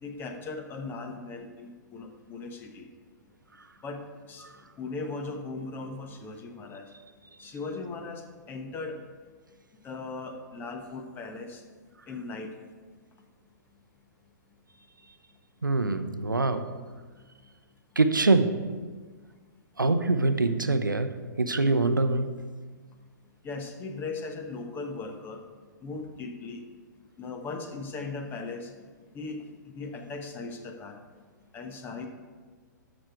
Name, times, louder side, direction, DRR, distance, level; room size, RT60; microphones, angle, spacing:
voice 1, 0.0-2.9 3.8-4.5 4.8-6.9 7.4-9.0 9.8-11.6 12.1-12.5 23.4-25.4 25.8-26.6 27.2-28.7 29.1-29.4 29.7-31.0 31.5-32.1, left 3 dB, 20° left, 5 dB, 1.1 m, -38 dB
voice 2, 15.6-16.8 18.0-18.8 19.8-22.4, right 3 dB, 85° right, 10 dB, 0.6 m, -25 dB
13.0 x 6.2 x 4.6 m, 1.5 s
figure-of-eight pair, 115°, 10 cm